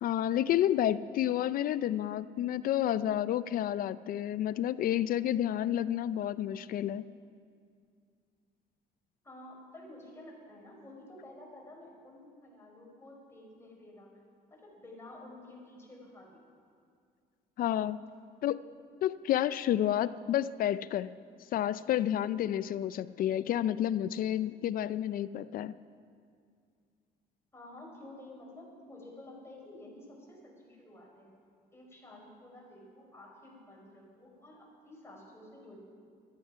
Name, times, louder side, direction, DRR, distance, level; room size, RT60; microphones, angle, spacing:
voice 1, 0.0-7.0 17.6-18.0 18.4-18.6 19.0-21.1 21.5-25.7, left 11 dB, 60° left, 16 dB, 0.4 m, -30 dB
voice 2, 9.2-14.2 14.5-16.4 27.5-31.3 31.7-35.8, left 1 dB, 15° left, -2 dB, 4.6 m, -51 dB
14.0 x 13.0 x 5.7 m, 2.2 s
cardioid pair, 110°, 17 cm